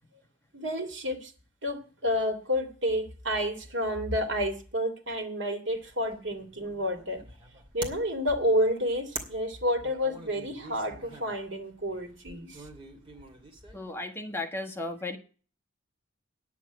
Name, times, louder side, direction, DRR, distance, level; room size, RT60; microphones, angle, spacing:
voice 1, 0.5-1.3 1.6-7.2 7.7-12.6, equal, 70° right, 5 dB, 2.5 m, -30 dB
sound 1, 5.7-14.0, right 2 dB, 30° right, 2.5 m, -46 dB
voice 2, 13.7-15.2, left 2 dB, 10° left, 2 dB, 1.4 m, -35 dB
10.0 x 7.4 x 8.2 m, 0.39 s
head